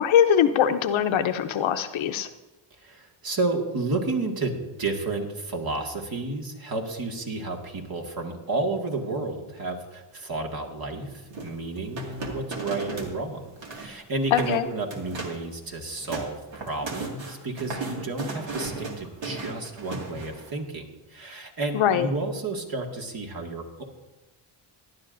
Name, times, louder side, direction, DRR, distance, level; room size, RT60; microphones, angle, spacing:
voice 1, 0.0-2.3 14.3-14.7 21.7-22.1, left 9 dB, 70° left, 9 dB, 0.8 m, -22 dB
voice 2, 2.8-23.8, right 2 dB, 45° right, 1 dB, 2.0 m, -31 dB
sound 1, 11.3-13.2 13.4-13.9 14.3-14.6 14.9-15.4 15.8-20.5, right 3 dB, 65° right, 2.2 m, -35 dB
18.0 x 11.0 x 2.6 m, 1.1 s
cardioid pair, 90°, 49 cm